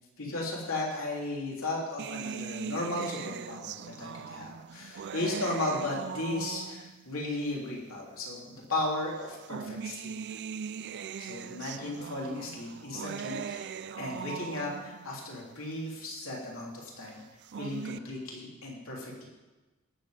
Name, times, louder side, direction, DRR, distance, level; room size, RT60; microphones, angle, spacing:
voice 1, 0.2-10.4 11.2-13.7 14.0-17.1 17.6-19.2, left 2 dB, 70° left, -3 dB, 3.4 m, -35 dB
sound 1, 2.0-7.1 8.0-8.1 9.2-15.1 17.2-18.0, right 7 dB, 50° right, 0.4 m, -40 dB
17.5 x 7.4 x 5.2 m, 1.2 s
head